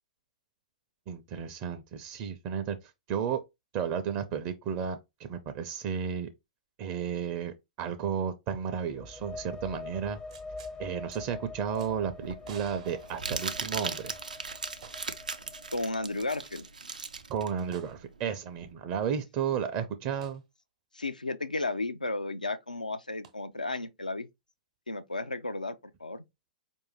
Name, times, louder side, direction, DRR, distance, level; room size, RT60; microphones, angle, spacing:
voice 1, 1.1-2.8 3.1-3.4 3.7-6.3 6.8-10.2 10.8-14.1 17.3-20.4, right 7 dB, 35° right, 0.5 m, -33 dB
sound 1, 8.9-16.4, left 3 dB, 15° left, 0.4 m, -45 dB
sound 2, 10.3-10.8 11.1-11.2 11.7-11.9 12.4-13.9 14.8-15.3 15.6-15.7 17.7-18.0 20.2-20.4 23.2-23.3, right 7 dB, 60° right, 0.9 m, -51 dB
Crumpling crinkling, 11.6-18.7, right 4 dB, 80° right, 0.5 m, -38 dB
voice 2, 15.7-16.7 20.9-24.3 24.9-25.7 26.0-26.2, left 2 dB, 90° left, 0.4 m, -33 dB
4.7 x 2.6 x 2.9 m
figure-of-eight pair, 110°, 4 cm